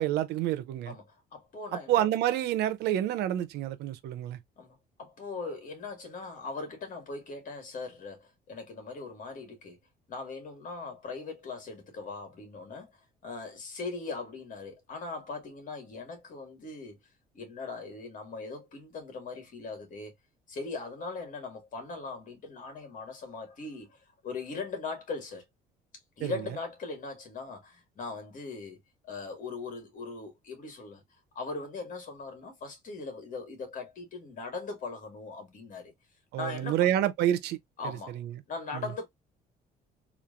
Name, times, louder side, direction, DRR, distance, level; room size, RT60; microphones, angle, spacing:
voice 1, 0.0-0.9 1.7-4.4 26.2-26.4 36.3-37.6 37.8-38.4 38.7-38.9, right 12 dB, 80° right, 0.7 m, -28 dB
voice 2, 0.9-2.1 4.6-9.8 10.1-17.0 17.3-20.1 20.5-25.4 26.2-28.8 29.0-31.0 31.3-35.9 36.4-36.9 37.8-38.2 38.5-39.1, left 3 dB, 50° left, 2.2 m, -40 dB
3.7 x 3.2 x 2.5 m
cardioid pair, 110°, 17 cm